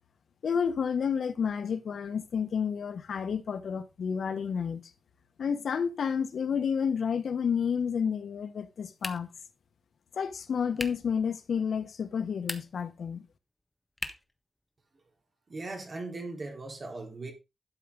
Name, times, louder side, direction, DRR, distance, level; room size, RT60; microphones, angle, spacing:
voice 1, 0.4-4.8 5.4-9.3 10.1-13.2, left 6 dB, 85° left, 1.2 m, -30 dB
sound 1, 9.0-9.5 10.7-11.1 12.3-12.9 14.0-14.4, left 1 dB, 10° left, 1.4 m, -38 dB
voice 2, 15.5-17.3, right 2 dB, 40° right, 4.0 m, -38 dB
12.0 x 7.2 x 3.8 m
wide cardioid pair, 120°, 0 cm